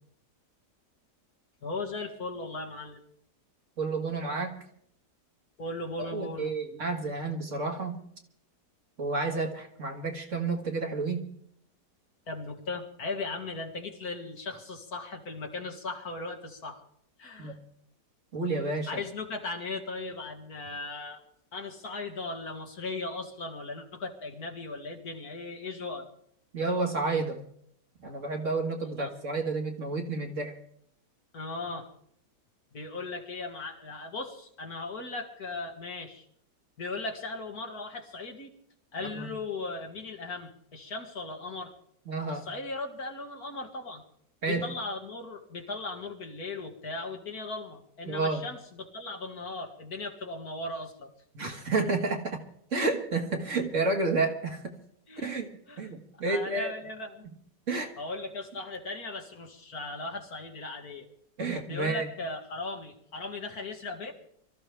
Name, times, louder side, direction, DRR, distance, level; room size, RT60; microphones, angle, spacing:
voice 1, 1.6-3.0 5.6-6.5 12.3-16.8 17.2-17.6 18.9-21.2 21.5-26.1 28.8-29.1 31.3-31.9 32.7-36.3 36.8-38.5 38.9-41.7 42.3-44.0 44.4-51.1 55.1-55.3 55.7-55.9 56.2-57.3 57.7-61.1 61.7-64.1, left 3 dB, 60° left, 3 dB, 2.3 m, -37 dB
voice 2, 3.8-4.6 6.1-8.0 9.0-11.3 17.4-17.5 18.3-18.9 26.5-27.4 28.0-30.5 39.0-39.3 42.1-42.4 44.4-44.7 48.1-48.5 51.3-52.4 52.7-54.7 55.2-55.5 55.8-56.7 57.7-57.9 61.4-62.1, right 3 dB, 45° right, 2 dB, 2.1 m, -30 dB
24.0 x 14.0 x 3.4 m, 0.68 s
omnidirectional pair, 1.8 m